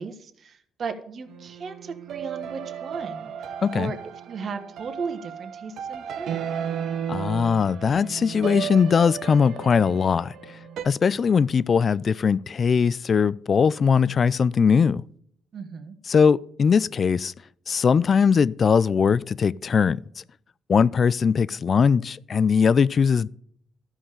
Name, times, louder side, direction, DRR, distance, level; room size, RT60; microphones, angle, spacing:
voice 1, 0.0-3.3 3.7-4.0 4.3-6.4 15.5-16.0, right 5 dB, 55° right, 1.4 m, -35 dB
sound 1, 1.3-10.8, right 8 dB, 75° right, 1.0 m, -34 dB
voice 2, 3.6-3.9 7.1-10.3 10.8-15.0 16.1-17.3 17.7-20.0 20.7-23.3, left 6 dB, 45° left, 0.4 m, -20 dB
12.5 x 5.7 x 6.6 m
cardioid pair, 90°, 0 cm